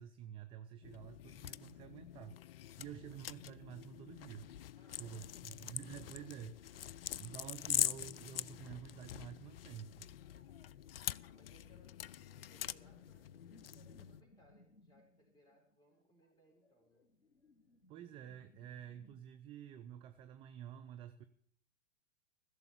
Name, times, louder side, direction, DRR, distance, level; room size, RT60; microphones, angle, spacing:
voice 1, 0.0-2.4 2.8-4.5 5.0-6.6 7.2-10.1 17.9-21.2, right 9 dB, 15° right, 9 dB, 0.5 m, -50 dB
sound 1, 0.8-14.2, left 11 dB, 55° left, 0.4 m, -44 dB
voice 2, 4.7-6.1 11.1-17.1, equal, 10° left, 0 dB, 4.7 m, -69 dB
sound 2, 10.1-19.2, left 1 dB, 90° left, 1.1 m, -66 dB
15.5 x 6.9 x 8.1 m, 0.62 s
figure-of-eight pair, 105°, 35 cm